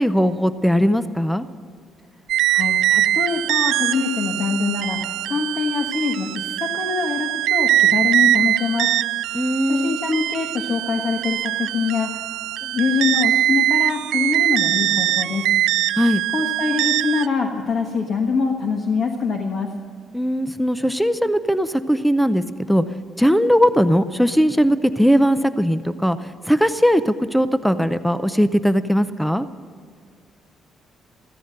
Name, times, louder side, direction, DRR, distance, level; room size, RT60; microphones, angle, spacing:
voice 1, 0.0-1.5 9.3-10.0 16.0-16.2 20.1-22.8 23.2-29.5, equal, ahead, 12 dB, 0.5 m, -19 dB
sound 1, 2.3-17.3, right 13 dB, 85° right, 0.3 m, -22 dB
voice 2, 2.4-8.9 9.7-12.2 12.6-15.4 16.3-19.7, left 5 dB, 45° left, 2 dB, 1.4 m, -24 dB
15.0 x 14.0 x 6.6 m, 2.1 s
cardioid pair, 155°, 0 cm